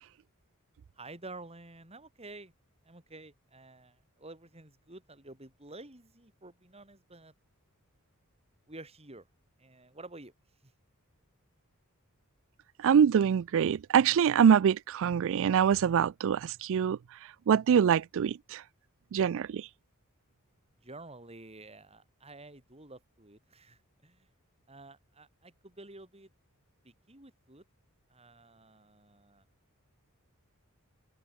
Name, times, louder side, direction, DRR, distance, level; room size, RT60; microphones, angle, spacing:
voice 1, 1.0-2.5 2.8-7.3 8.7-9.3 9.6-10.3 20.8-24.3 24.7-26.3 26.8-27.6 28.1-29.5, right 2 dB, 25° right, 5.5 m, -50 dB
voice 2, 12.8-17.0 17.5-18.6 19.1-19.7, right 8 dB, 60° right, 0.3 m, -24 dB
open air
head